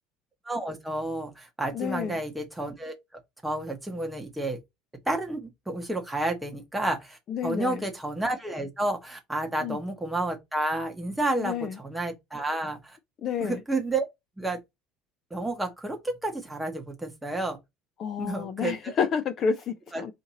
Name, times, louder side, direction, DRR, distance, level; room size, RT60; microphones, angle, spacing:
voice 1, 0.5-2.9 3.4-4.6 5.1-13.0 13.4-14.0 14.4-14.6 15.3-17.6 18.2-18.9 19.9-20.0, right 2 dB, 5° right, 0.9 m, -30 dB
voice 2, 1.7-2.2 7.3-7.8 9.6-9.8 11.4-11.8 13.2-13.6 18.0-20.1, left 6 dB, 30° left, 0.3 m, -30 dB
4.2 x 2.5 x 3.9 m
cardioid pair, 170°, 0 cm